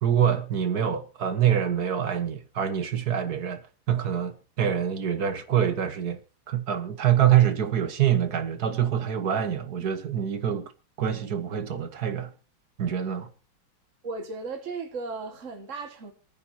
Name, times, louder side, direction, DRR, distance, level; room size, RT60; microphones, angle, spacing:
voice 1, 0.0-6.2 6.5-10.7 11.0-12.3 12.8-13.3, right 9 dB, 55° right, 1.7 m, -25 dB
voice 2, 14.0-16.1, right 4 dB, 40° right, 2.1 m, -35 dB
27.5 x 9.7 x 2.8 m
omnidirectional pair, 2.2 m